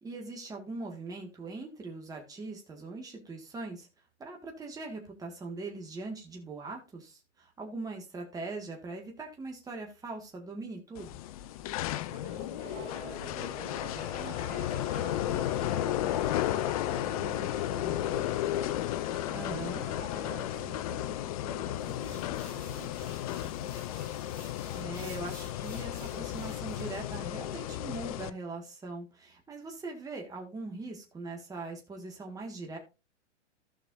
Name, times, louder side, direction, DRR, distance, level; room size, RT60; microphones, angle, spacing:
voice 1, 0.0-3.9 4.2-11.2 19.3-19.9 24.7-32.8, right 3 dB, 10° right, 1 dB, 1.8 m, -41 dB
sound 1, 11.0-28.3, left 13 dB, 30° left, 0.5 m, -34 dB
voice 2, 12.1-24.1, right 6 dB, 35° right, 5 dB, 1.7 m, -50 dB
sound 2, 12.6-20.6, left 2 dB, 60° left, 4.8 m, -45 dB
sound 3, 21.8-26.9, left 1 dB, 90° left, 4.2 m, -53 dB
15.5 x 5.9 x 2.6 m, 0.28 s
hypercardioid pair, 120°, 36 cm